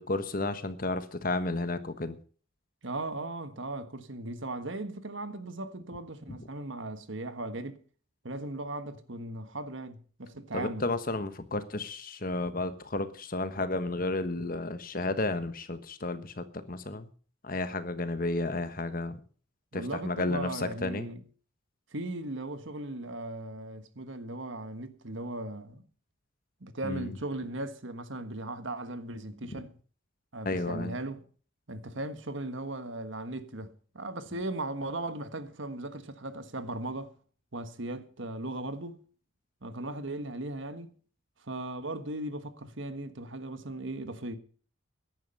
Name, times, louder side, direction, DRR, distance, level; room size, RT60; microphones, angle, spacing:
voice 1, 0.0-2.2 6.3-6.4 10.5-17.1 17.4-19.2 19.7-21.1 26.8-27.2 29.5-29.6 30.4-31.0, left 2 dB, 45° left, 1.3 m, -32 dB
voice 2, 2.8-7.8 8.2-10.8 19.7-21.2 21.9-25.8 26.6-29.7 30.3-31.2 31.7-37.1 37.5-39.0 39.6-40.9 41.4-44.4, right 2 dB, 65° right, 1.5 m, -37 dB
14.5 x 11.0 x 5.4 m
head